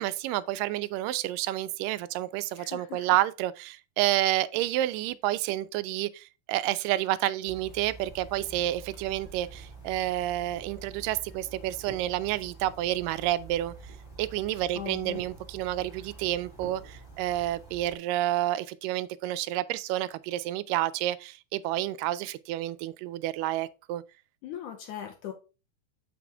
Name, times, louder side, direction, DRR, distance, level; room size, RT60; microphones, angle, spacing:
voice 1, 0.0-13.7 14.2-24.0, right 14 dB, 90° right, 2.2 m, -29 dB
voice 2, 2.5-3.2 14.8-15.2 24.4-25.3, left 10 dB, 75° left, 2.3 m, -39 dB
sound 1, 7.5-18.0, right 3 dB, 15° left, 2.5 m, -47 dB
6.8 x 6.0 x 3.4 m
omnidirectional pair, 3.7 m